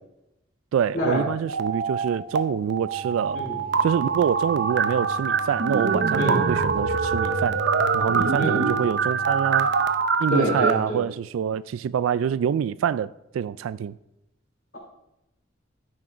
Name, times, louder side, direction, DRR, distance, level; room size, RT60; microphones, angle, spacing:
voice 1, 0.7-3.4 3.8-7.6 7.9-9.7 10.2-14.0, right 8 dB, 85° right, 0.3 m, -26 dB
sound 1, 1.5-2.4 2.7-10.7, right 5 dB, 60° right, 0.8 m, -24 dB
sound 2, 2.2-9.9, equal, 30° right, 1.4 m, -42 dB
voice 2, 8.4-8.7 10.3-11.0, equal, 55° left, 3.2 m, -26 dB
13.5 x 6.4 x 4.9 m
head